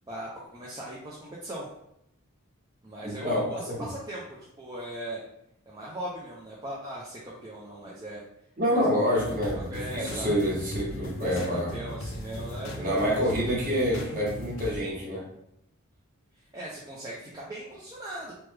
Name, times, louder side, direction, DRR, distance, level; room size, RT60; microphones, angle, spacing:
voice 1, 0.1-1.7 2.8-5.2 5.7-8.2 8.7-8.8 9.2-9.3 9.7-10.3 11.2-13.0 16.5-18.3, right 1 dB, 20° right, -5 dB, 0.4 m, -39 dB
voice 2, 3.0-3.8 8.6-11.7 12.8-15.3, equal, 40° right, -6 dB, 1.1 m, -27 dB
sound 1, 9.1-14.8, left 1 dB, 65° left, 0.4 m, -38 dB
3.2 x 2.1 x 3.2 m, 0.78 s
head